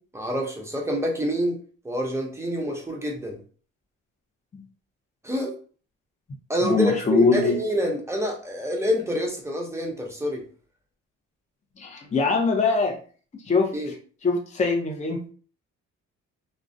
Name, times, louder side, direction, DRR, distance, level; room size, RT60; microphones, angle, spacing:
voice 1, 0.1-1.6 1.8-3.4 5.2-5.5 6.5-10.4 13.7-13.9, equal, 10° right, 0 dB, 0.7 m, -27 dB
voice 2, 6.6-7.5 11.8-13.0 13.5-13.7 14.2-15.2, left 4 dB, 25° left, 1 dB, 0.5 m, -22 dB
2.3 x 2.1 x 2.6 m, 0.41 s
cardioid pair, 90°, 30 cm